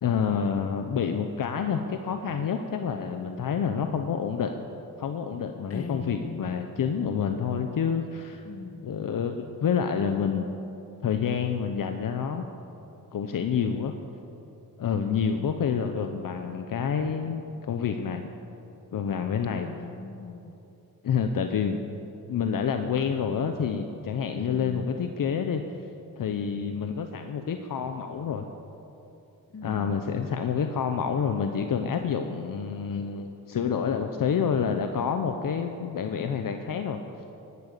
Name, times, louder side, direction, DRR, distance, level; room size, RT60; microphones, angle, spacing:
voice 1, 0.0-4.6 5.0-8.4 8.8-10.6 11.0-12.4 13.1-13.9 14.8-18.3 18.9-19.7 21.0-21.8 22.3-25.6 26.2-28.5 29.6-37.0, left 7 dB, 60° left, 6 dB, 0.9 m, -28 dB
voice 2, 5.7-6.5 8.5-8.9 14.9-15.4 19.6-20.5 24.4-24.8 29.5-30.0, left 4 dB, 40° left, 8 dB, 1.4 m, -39 dB
17.0 x 11.5 x 6.8 m, 2.9 s
cardioid pair, 85°, 37 cm